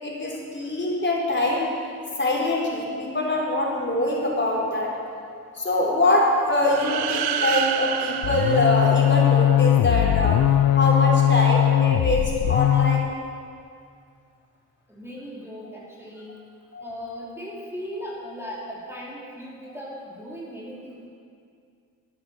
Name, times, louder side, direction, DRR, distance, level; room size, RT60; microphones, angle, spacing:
voice 1, 0.0-1.7 2.2-4.9 5.2-13.1 16.7-16.8, left 1 dB, 30° left, -3 dB, 4.3 m, -24 dB
sound 1, 6.7-9.6, right 9 dB, 75° right, 0.8 m, -29 dB
sound 2, 8.2-13.1, left 11 dB, 60° left, 0.6 m, -20 dB
voice 2, 14.9-16.4 16.8-21.1, equal, 5° right, -5 dB, 2.9 m, -37 dB
12.5 x 11.0 x 6.6 m, 2.3 s
supercardioid pair, 45°, 39 cm